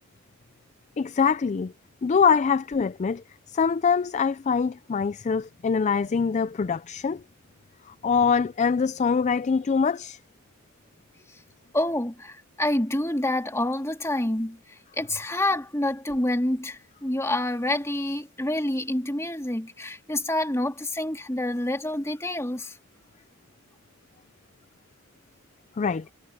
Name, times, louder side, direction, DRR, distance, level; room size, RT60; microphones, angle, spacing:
voice 1, 1.0-1.7 2.0-7.2 7.9-10.2 25.8-26.1, left 6 dB, 30° left, 0.3 m, -24 dB
voice 2, 11.7-14.6 14.9-22.7, left 1 dB, 15° left, 2.5 m, -27 dB
head